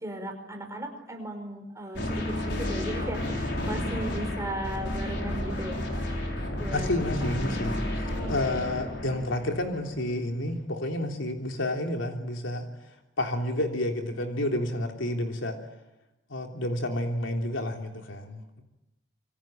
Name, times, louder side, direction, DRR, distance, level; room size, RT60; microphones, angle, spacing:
voice 1, 0.0-5.8 6.6-6.9 7.2-7.4 8.0-8.7, right 1 dB, 15° right, 4 dB, 5.1 m, -37 dB
sound 1, 1.9-10.1, left 1 dB, 65° left, 6.1 m, -31 dB
voice 2, 6.7-7.8 8.3-12.7 13.2-15.6 16.3-18.6, left 1 dB, 90° left, 3 dB, 3.3 m, -30 dB
26.5 x 24.5 x 9.0 m, 0.97 s
head